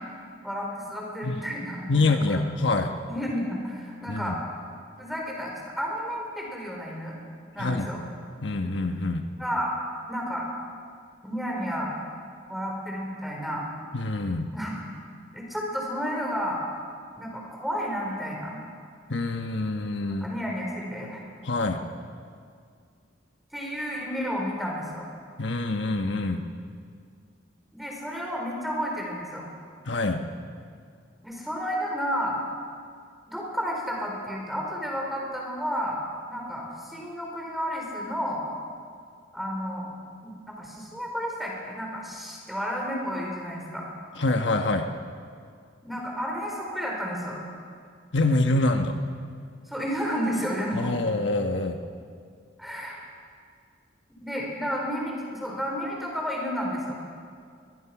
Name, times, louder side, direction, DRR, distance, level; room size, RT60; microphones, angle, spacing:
voice 1, 0.4-2.4 3.0-4.4 5.0-7.2 7.5-8.0 9.4-9.8 10.1-10.5 11.2-11.9 12.5-13.7 14.5-14.7 15.3-16.6 17.1-18.6 20.2-21.2 23.5-25.0 27.7-29.4 31.2-32.4 33.3-36.0 36.3-38.4 39.3-39.9 40.2-43.9 45.8-47.4 49.7-50.9 52.6-53.0 54.2-57.0, equal, ahead, -1 dB, 4.5 m, -31 dB
voice 2, 1.9-2.9 4.1-4.4 7.6-7.9 8.4-9.2 13.9-14.5 19.1-20.3 21.4-21.8 25.4-26.5 29.9-30.3 44.1-44.9 48.1-49.0 50.7-51.8, left 2 dB, 75° left, 5 dB, 1.2 m, -25 dB
22.0 x 21.5 x 6.0 m, 2.2 s
head